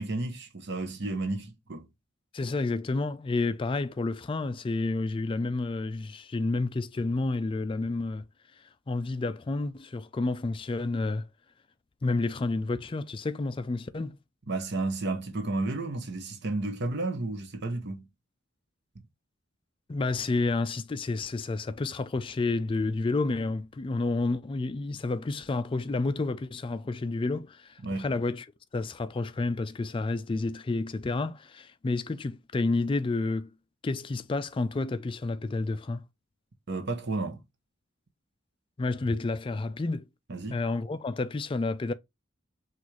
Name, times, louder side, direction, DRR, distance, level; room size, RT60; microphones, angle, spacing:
voice 1, 0.0-1.8 14.5-18.1 18.9-19.0 27.8-28.1 36.7-37.4 40.3-40.6, right 2 dB, 55° right, 0.9 m, -32 dB
voice 2, 2.3-8.3 8.6-11.3 12.0-14.2 19.9-28.5 28.7-33.5 33.8-36.1 38.8-40.1 40.5-41.9, left 3 dB, 25° left, 0.3 m, -30 dB
6.1 x 2.5 x 3.1 m
head